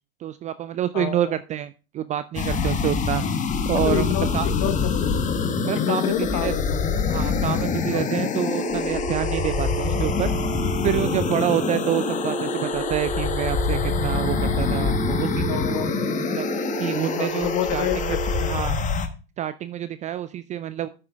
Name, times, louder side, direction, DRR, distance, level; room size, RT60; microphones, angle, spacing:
voice 1, 0.2-3.2 3.6-4.1 4.3-4.5 5.6-6.5 7.1-10.3 10.8-15.9 16.3-16.5 16.8-18.2 18.5-18.8 19.4-20.9, right 11 dB, 25° right, 13 dB, 0.4 m, -27 dB
voice 2, 0.9-1.4 3.1-3.3 3.7-5.1 5.7-7.0 7.4-7.6 7.9-8.0 15.5-15.9 17.1-18.6, left 12 dB, 45° left, 11 dB, 1.0 m, -29 dB
sound 1, 2.3-19.1, left 5 dB, 25° left, 1.2 m, -25 dB
sound 2, 8.5-18.5, right 9 dB, 10° right, 2.1 m, -32 dB
13.0 x 9.3 x 2.3 m, 0.33 s
hypercardioid pair, 90°, 31 cm